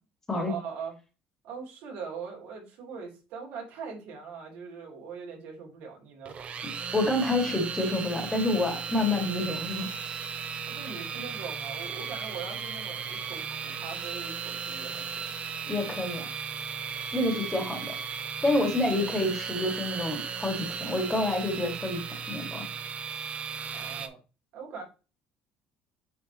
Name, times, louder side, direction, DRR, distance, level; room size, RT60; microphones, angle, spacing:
voice 1, 0.3-0.9 1.4-6.4 10.7-15.3 23.7-24.2 24.5-24.8, right 6 dB, 75° right, 0 dB, 3.3 m, -41 dB
sound 1, 6.3-24.1, right 6 dB, 35° right, 0.7 m, -36 dB
voice 2, 6.6-9.9 15.7-16.3 17.1-17.9 18.4-22.7, left 2 dB, 15° left, 4 dB, 1.9 m, -28 dB
8.6 x 4.2 x 2.9 m, 0.32 s
cardioid pair, 125°, 3 cm